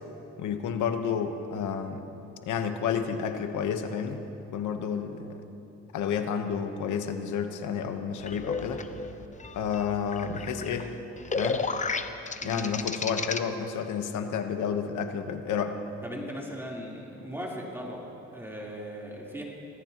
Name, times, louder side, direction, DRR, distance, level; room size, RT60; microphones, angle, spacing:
voice 1, 0.4-2.1 2.4-4.2 4.5-5.4 5.9-8.8 9.5-11.0 11.3-11.7 12.4-15.8, left 7 dB, 80° left, 7 dB, 1.1 m, -30 dB
sound 1, 8.2-13.4, left 4 dB, 25° left, 0.8 m, -33 dB
voice 2, 12.4-12.7 16.0-18.1 18.3-19.4, equal, 10° right, -3 dB, 3.5 m, -38 dB
25.5 x 17.0 x 3.0 m, 2.9 s
cardioid pair, 90°, 30 cm